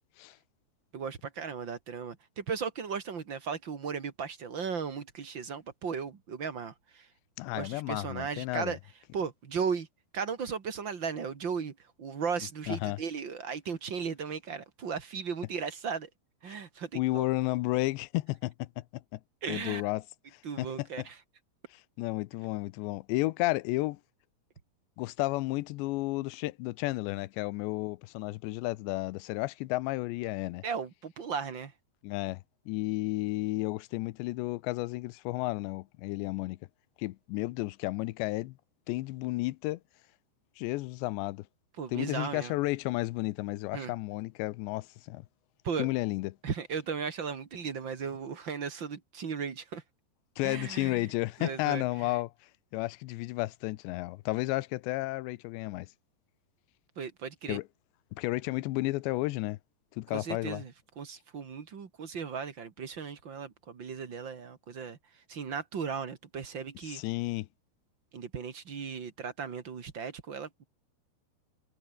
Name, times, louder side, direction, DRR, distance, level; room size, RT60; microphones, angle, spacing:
voice 1, 0.9-7.1 7.5-8.8 9.1-9.9 10.1-16.1 16.4-17.3 19.4-19.8 20.4-21.2 30.6-31.7 41.8-42.5 43.7-43.9 45.6-45.9 46.4-49.8 50.4-51.1 51.4-52.1 57.0-57.6 60.1-67.0 68.1-70.6, right 6 dB, 45° right, 1.7 m, -36 dB
voice 2, 7.4-8.8 12.7-13.0 16.9-18.8 19.1-19.2 19.5-20.0 20.3-21.1 22.0-24.0 25.0-30.6 32.0-36.6 37.0-38.6 38.9-39.8 40.6-41.5 41.9-45.2 45.8-46.4 50.4-52.3 52.7-55.9 57.5-57.7 58.1-59.6 59.9-60.6 66.8-67.5, left 20 dB, 90° left, 3.0 m, -32 dB
omnidirectional pair, 4.9 m